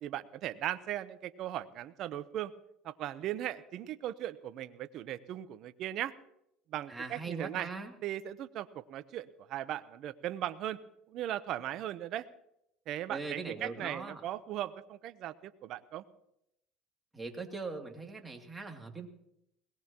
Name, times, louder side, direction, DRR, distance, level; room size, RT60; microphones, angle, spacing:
voice 1, 0.0-2.5 2.8-6.1 6.7-7.7 8.0-10.8 11.1-12.3 12.9-16.0, right 12 dB, 55° right, 13 dB, 0.8 m, -38 dB
voice 2, 6.9-7.9 13.1-14.2 17.1-19.1, right 3 dB, 15° right, 2 dB, 2.6 m, -41 dB
21.0 x 18.5 x 3.0 m, 0.79 s
hypercardioid pair, 85°, 0 cm